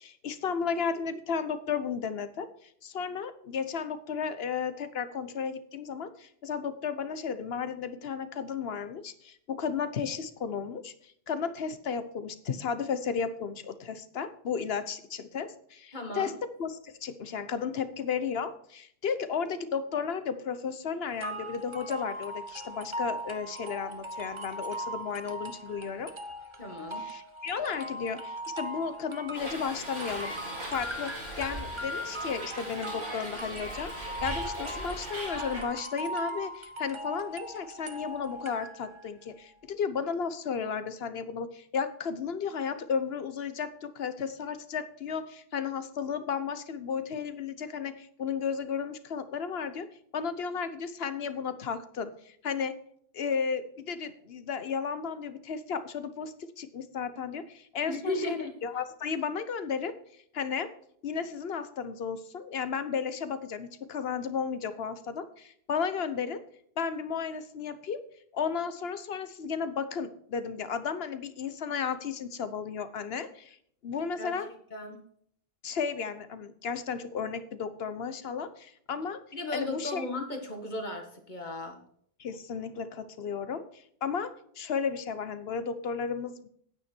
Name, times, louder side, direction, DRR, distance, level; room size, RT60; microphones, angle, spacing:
voice 1, 0.0-16.3 16.6-26.1 27.0-30.3 30.7-49.9 50.1-52.7 53.1-59.9 60.3-60.7 61.0-66.4 66.8-68.0 68.3-73.6 73.8-74.5 75.6-79.2 79.5-80.0 82.2-86.5, left 6 dB, 75° left, 12 dB, 1.1 m, -34 dB
voice 2, 15.9-16.3 26.6-27.1 57.9-58.5 74.2-74.4 74.7-75.0 79.3-81.8, left 1 dB, 45° left, 4 dB, 1.9 m, -35 dB
sound 1, 21.2-39.1, right 1 dB, 30° right, 1.0 m, -39 dB
Hiss, 29.3-35.6, right 1 dB, 90° right, 4.8 m, -39 dB
9.6 x 9.3 x 4.5 m, 0.64 s
omnidirectional pair, 1.0 m